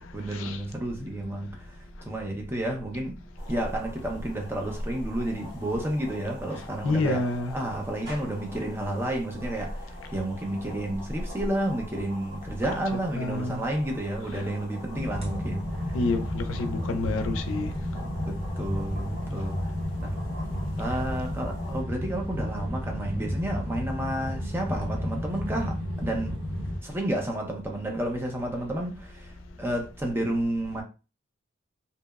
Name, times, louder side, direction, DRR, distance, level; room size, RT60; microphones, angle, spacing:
voice 1, 0.1-1.7 2.0-3.2 3.5-7.3 7.5-16.0 16.5-16.6 18.0-19.6 20.0-20.2 20.8-26.4 26.8-29.3 29.6-30.8, right 1 dB, 10° right, 0.5 m, -31 dB
sound 1, 3.4-21.8, left 1 dB, 55° right, 1.1 m, -42 dB
voice 2, 6.8-7.6 12.9-13.6 15.9-17.7, left 2 dB, 85° left, 0.4 m, -28 dB
sound 2, 14.9-26.8, equal, 30° right, 0.8 m, -32 dB
2.7 x 2.0 x 2.2 m
head